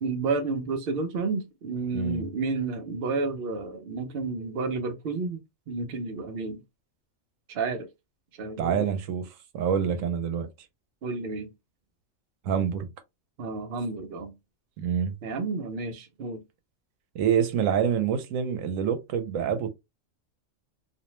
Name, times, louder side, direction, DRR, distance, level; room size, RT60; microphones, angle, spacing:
voice 1, 0.0-5.4 5.7-6.6 7.5-7.9 8.4-8.9 9.8-9.9 11.0-11.5 13.4-14.3 15.2-16.4, right 4 dB, 55° right, 0.7 m, -31 dB
voice 2, 1.9-2.2 8.6-9.3 9.5-10.5 12.4-12.9 14.8-15.1 17.1-19.8, right 8 dB, 80° right, 1.0 m, -26 dB
2.6 x 2.1 x 2.9 m
omnidirectional pair, 1.3 m